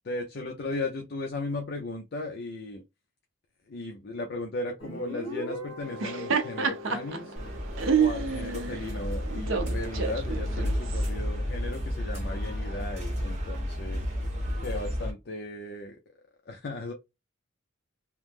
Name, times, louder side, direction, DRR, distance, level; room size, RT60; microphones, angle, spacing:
voice 1, 0.0-2.8 3.7-7.3 7.9-14.0 14.6-16.0 16.5-16.9, left 2 dB, 50° left, 0.5 m, -36 dB
Guitar, 4.8-8.3, left 2 dB, 25° left, 1.5 m, -41 dB
Laughter, 5.8-11.1, right 6 dB, 70° right, 0.5 m, -29 dB
sound 1, 7.4-15.1, equal, 35° right, 0.8 m, -32 dB
2.9 x 2.0 x 3.3 m
head